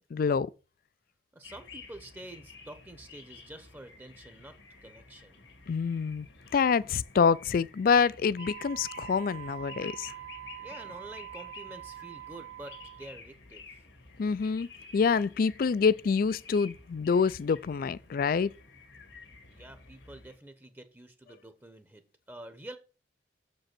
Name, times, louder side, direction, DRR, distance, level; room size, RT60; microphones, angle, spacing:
voice 1, 0.1-0.5 5.7-6.3 6.5-10.1 14.2-14.7 14.9-18.5, left 5 dB, 50° left, 0.3 m, -26 dB
voice 2, 1.3-5.4 10.6-13.8 19.5-22.0 22.3-22.8, right 1 dB, 10° right, 0.8 m, -48 dB
sound 1, 1.4-20.4, left 4 dB, 85° left, 2.0 m, -51 dB
Wind instrument woodwind instrument, 8.4-13.2, right 13 dB, 70° right, 0.5 m, -44 dB
7.0 x 5.3 x 5.9 m
head